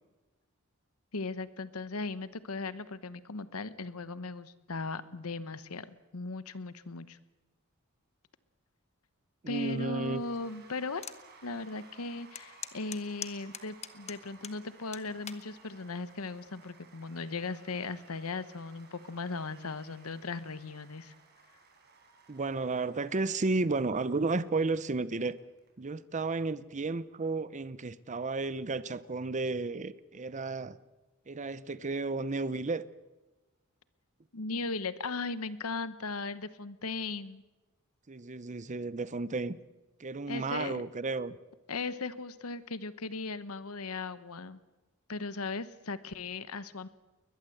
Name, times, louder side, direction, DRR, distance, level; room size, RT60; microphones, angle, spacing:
voice 1, 1.1-7.2 9.5-11.0 11.4-21.1 34.3-37.4 40.3-40.8 41.7-44.6 45.1-46.9, left 3 dB, 80° left, 1.0 m, -37 dB
voice 2, 9.4-10.2 22.3-25.4 25.8-30.8 31.3-32.8 38.1-39.6 40.0-41.4, right 3 dB, 35° right, 0.7 m, -33 dB
Cheering / Applause / Crowd, 10.1-25.7, right 4 dB, 50° right, 4.9 m, -59 dB
sound 1, 11.0-11.2 11.7-11.8 12.3-14.6 14.9-15.4 16.2-16.5, left 8 dB, 30° left, 1.1 m, -41 dB
21.0 x 20.5 x 7.9 m
head